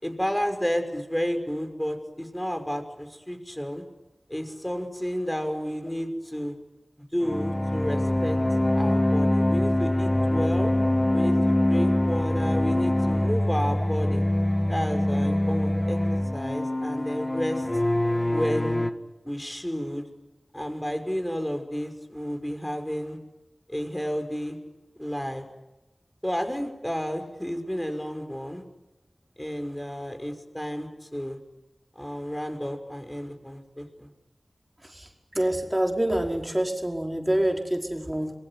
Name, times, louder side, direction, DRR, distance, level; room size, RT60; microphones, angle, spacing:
voice 1, 0.0-3.8 4.3-6.5 7.0-8.4 8.7-10.7 11.1-14.3 14.7-17.7 18.3-18.8 19.2-20.0 20.5-23.2 23.7-24.6 25.0-25.4 26.2-28.6 29.4-31.4 32.0-34.1, equal, 10° left, 7 dB, 5.8 m, -31 dB
sound 1, 7.2-18.9, left 1 dB, 30° left, 2.0 m, -24 dB
voice 2, 34.8-38.3, right 1 dB, 15° right, 2 dB, 5.1 m, -27 dB
26.5 x 22.5 x 9.9 m, 1.0 s
wide cardioid pair, 40°, 0 cm